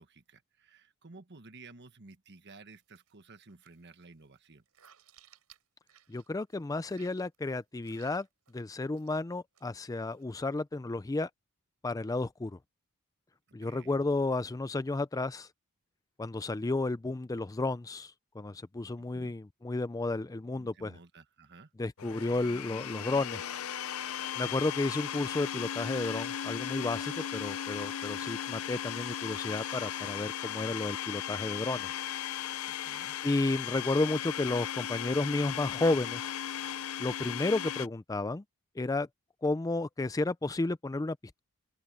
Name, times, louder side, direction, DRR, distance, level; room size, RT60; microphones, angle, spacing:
voice 1, 0.0-4.6 13.6-14.0 19.0-19.3 20.5-21.7 32.7-33.2, right 3 dB, 50° right, 1.4 m, -54 dB
sound 1, 2.7-3.1 3.4-6.6 6.8-8.6 8.9-9.2 9.5-10.2, right 10 dB, 85° right, 4.3 m, -61 dB
voice 2, 6.1-8.3 8.5-11.3 11.8-12.6 13.5-15.5 16.2-21.0 21.8-23.4 24.4-31.9 33.2-36.3 37.0-38.4 38.8-39.1 39.4-41.4, left 2 dB, 15° left, 0.4 m, -32 dB
Domestic sounds home sounds, 22.0-37.9, left 10 dB, 70° left, 0.6 m, -37 dB
open air
head